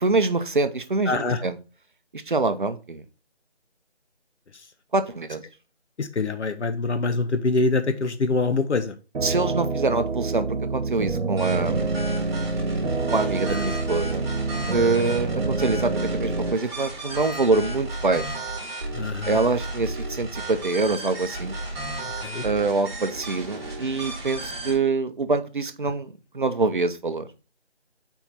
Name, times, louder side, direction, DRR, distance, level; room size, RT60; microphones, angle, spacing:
voice 1, 0.0-1.1 1.4-1.6 2.1-3.0 4.9-5.4 9.2-10.5 10.7-12.0 13.0-14.3 14.7-18.3 19.3-21.5 22.4-27.3, right 3 dB, 45° right, 10 dB, 0.6 m, -25 dB
voice 2, 1.1-1.4 6.0-8.9 13.5-13.6 18.9-19.4 22.0-22.4, left 3 dB, 85° left, 8 dB, 0.9 m, -25 dB
sound 1, 9.1-16.5, right 3 dB, 80° right, 1.0 m, -27 dB
sound 2, 11.4-24.7, right 1 dB, 25° right, 2.2 m, -33 dB
4.5 x 4.4 x 5.4 m, 0.34 s
figure-of-eight pair, 165°, 34 cm